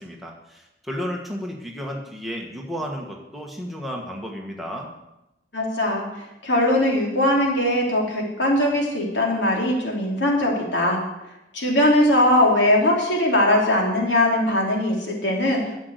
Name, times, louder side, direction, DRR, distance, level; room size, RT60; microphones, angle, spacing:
voice 1, 0.0-4.9, equal, ahead, -1 dB, 1.6 m, -33 dB
voice 2, 5.5-11.0 11.5-15.6, left 1 dB, 85° left, -1 dB, 3.2 m, -20 dB
11.0 x 7.9 x 8.1 m, 0.93 s
head